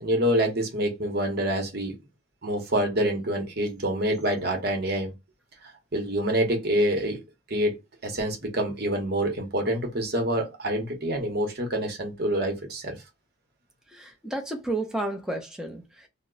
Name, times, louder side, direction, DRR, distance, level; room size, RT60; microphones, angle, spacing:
voice 1, 0.0-2.0 2.4-5.1 5.9-7.2 7.5-7.8 8.0-13.0, right 1 dB, 50° right, 0.9 m, -26 dB
voice 2, 13.9-16.1, right 2 dB, 5° right, 0.6 m, -32 dB
2.9 x 2.1 x 3.7 m
head